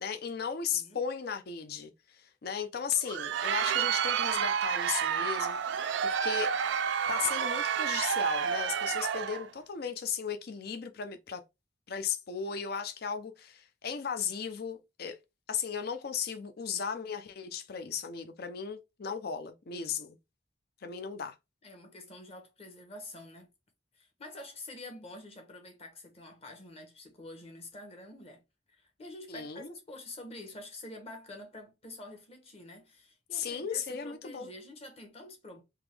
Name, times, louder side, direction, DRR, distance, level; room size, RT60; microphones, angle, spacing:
voice 1, 0.0-6.5 7.1-11.4 11.9-15.2 15.5-20.2 20.8-21.4 29.3-29.7 33.3-34.5, left 7 dB, 55° left, 0.5 m, -36 dB
voice 2, 0.7-1.0 21.6-23.5 23.9-28.4 28.7-35.6, left 1 dB, 35° left, 1.1 m, -47 dB
Crowd, 2.9-9.5, right 8 dB, 70° right, 0.4 m, -30 dB
3.7 x 2.9 x 3.3 m
head